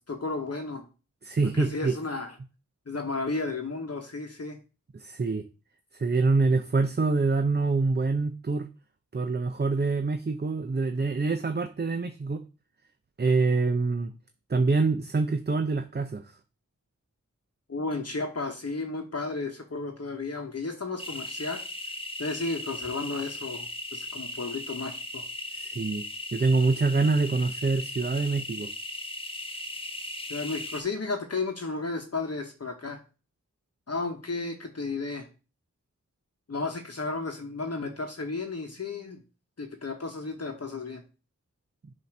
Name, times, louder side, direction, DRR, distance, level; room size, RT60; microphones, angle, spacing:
voice 1, 0.1-0.9 1.5-2.4 2.9-4.6 17.7-21.6 22.2-25.2 30.3-33.0 33.9-35.3 36.5-39.2 39.6-41.0, left 3 dB, 50° left, 3 dB, 1.0 m, -33 dB
voice 2, 1.2-2.0 4.9-5.4 5.9-8.7 9.1-12.4 13.2-14.1 14.5-16.3 25.5-26.1 26.3-28.7, right 3 dB, 35° right, 8 dB, 0.5 m, -25 dB
sound 1, 21.0-30.8, left 1 dB, 15° left, 0.9 m, -37 dB
7.5 x 2.8 x 5.9 m, 0.33 s
wide cardioid pair, 55°, 31 cm